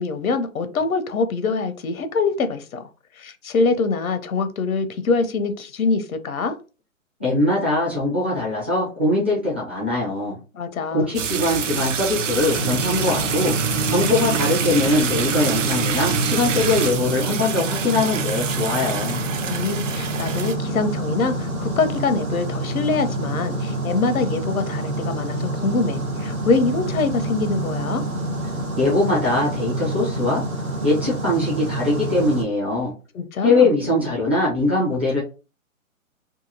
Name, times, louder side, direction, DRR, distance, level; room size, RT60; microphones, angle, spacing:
voice 1, 0.0-2.9 3.2-6.6 10.5-11.1 19.5-28.0 33.1-33.7, left 4 dB, 80° left, 0.6 m, -24 dB
voice 2, 7.2-10.4 10.9-13.5 13.9-19.2 28.8-30.4 30.8-32.9 33.4-35.2, left 2 dB, 10° right, 0.4 m, -21 dB
sound 1, 11.1-20.5, right 7 dB, 60° right, 0.6 m, -26 dB
sound 2, 12.5-32.4, right 1 dB, 85° right, 1.1 m, -27 dB
2.7 x 2.6 x 2.6 m
figure-of-eight pair, 135°, 42 cm